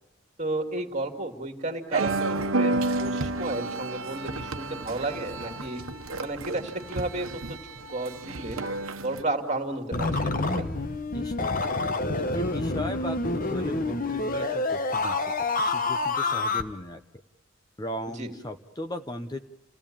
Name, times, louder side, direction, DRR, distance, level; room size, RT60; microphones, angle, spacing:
voice 1, 0.4-5.8 6.2-7.6 7.9-8.6 9.0-10.7 18.2-18.3, right 2 dB, 35° right, 5 dB, 2.5 m, -32 dB
sound 1, 1.9-9.2, right 2 dB, 80° right, 1.2 m, -31 dB
sound 2, 9.9-16.6, left 3 dB, 40° left, 1.1 m, -27 dB
voice 2, 11.1-11.6 12.1-15.3 15.6-17.0 17.8-19.4, left 1 dB, 20° left, 6 dB, 0.8 m, -37 dB
30.0 x 16.5 x 8.8 m, 0.96 s
head